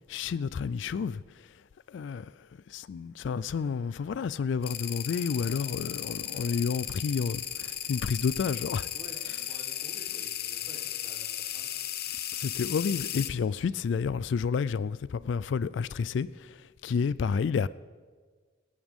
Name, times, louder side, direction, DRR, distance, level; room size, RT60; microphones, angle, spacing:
voice 1, 0.1-1.5 1.9-8.9 12.1-17.7, left 6 dB, 70° left, 0.3 m, -30 dB
sound 1, 3.5-9.2, right 1 dB, 70° right, 2.7 m, -58 dB
sound 2, 4.6-13.3, left 11 dB, 50° left, 0.7 m, -35 dB
voice 2, 8.9-11.7 13.6-13.7, right 1 dB, 25° right, 3.6 m, -50 dB
25.0 x 11.0 x 3.6 m
head